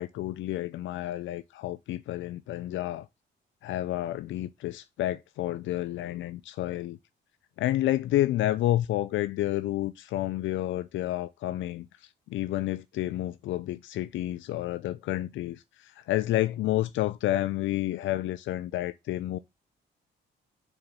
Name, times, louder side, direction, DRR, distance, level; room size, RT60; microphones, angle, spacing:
voice 1, 0.0-3.1 3.6-7.0 7.6-11.9 12.3-19.4, left 14 dB, 75° left, 0.4 m, -30 dB
5.5 x 4.5 x 6.4 m
cardioid pair, 90°, 20 cm